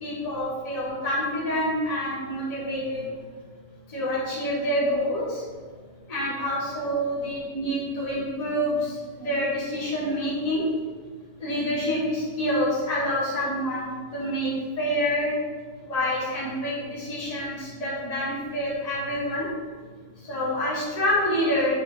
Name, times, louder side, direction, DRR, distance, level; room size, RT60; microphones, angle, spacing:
voice 1, 0.0-3.0 3.9-5.4 6.1-8.9 9.2-10.6 11.4-14.5 14.8-15.3 15.9-19.5 20.3-21.7, equal, 20° left, -8 dB, 1.8 m, -27 dB
6.9 x 3.8 x 5.4 m, 1.6 s
omnidirectional pair, 1.8 m